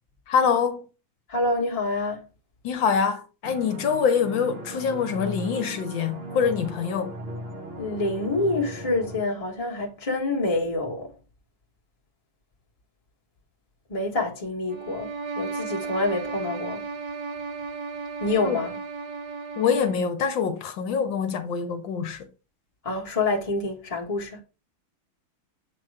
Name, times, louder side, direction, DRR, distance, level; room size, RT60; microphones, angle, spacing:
voice 1, 0.3-0.8 2.6-7.1 18.4-18.6 19.6-22.2, left 6 dB, 75° left, 1.5 m, -25 dB
voice 2, 1.3-2.2 7.8-11.1 13.9-15.1 15.3-16.9 18.2-18.7 22.8-24.4, left 2 dB, 20° left, 1.3 m, -27 dB
sound 1, 3.4-9.2, right 1 dB, 40° right, 1.0 m, -38 dB
sound 2, 14.7-20.1, right 4 dB, 65° right, 1.1 m, -34 dB
7.7 x 3.0 x 4.7 m
omnidirectional pair, 2.2 m